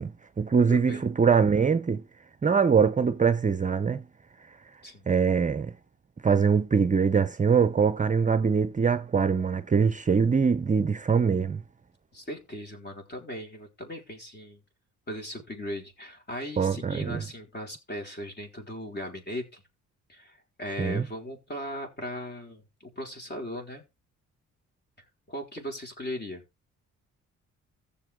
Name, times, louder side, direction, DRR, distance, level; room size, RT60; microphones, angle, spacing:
voice 1, 0.0-2.0 2.4-4.0 5.1-5.7 6.2-11.6 16.6-17.2 20.8-21.0, right 6 dB, 25° right, 0.7 m, -23 dB
voice 2, 0.7-1.0 4.8-5.1 12.1-14.6 15.1-19.6 20.1-23.8 25.3-26.4, left 1 dB, 35° left, 4.6 m, -38 dB
15.5 x 7.1 x 3.7 m
cardioid pair, 90°, 30 cm